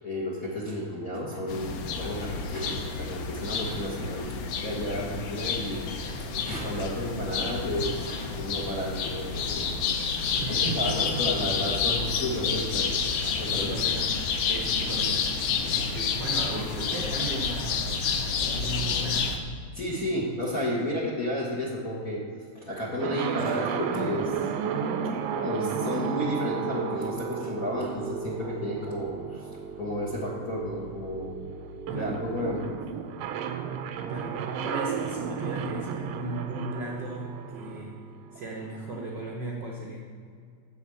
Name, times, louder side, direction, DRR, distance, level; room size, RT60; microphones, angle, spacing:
voice 1, 0.0-6.1 6.4-9.5 10.1-10.2 10.7-12.9 13.4-13.7 19.7-22.2 22.6-24.3 25.3-29.5 29.8-31.3 31.9-32.6, left 1 dB, 45° left, -4 dB, 1.2 m, -32 dB
sound 1, 1.5-19.4, left 5 dB, 80° left, 1.2 m, -29 dB
voice 2, 10.4-11.2 13.5-14.1 14.5-15.2 15.9-19.4 31.9-32.2 33.9-38.0 38.3-40.1, right 2 dB, 70° right, -2 dB, 1.0 m, -36 dB
sound 2, 23.0-38.8, right 7 dB, 90° right, 1.3 m, -33 dB
11.0 x 4.1 x 7.6 m, 2.2 s
omnidirectional pair, 3.4 m